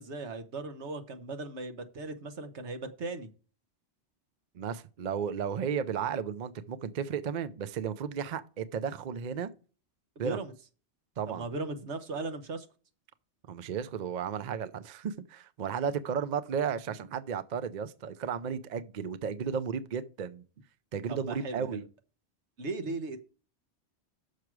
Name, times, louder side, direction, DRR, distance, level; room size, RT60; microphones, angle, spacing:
voice 1, 0.0-3.3 10.2-10.5 11.3-12.7 21.1-21.8 22.6-23.2, right 3 dB, 80° right, 1.4 m, -37 dB
voice 2, 4.5-9.5 10.2-10.4 11.2-11.5 13.5-20.4 20.9-21.8, right 7 dB, 50° right, 0.6 m, -34 dB
6.6 x 6.0 x 4.6 m
omnidirectional pair, 1.2 m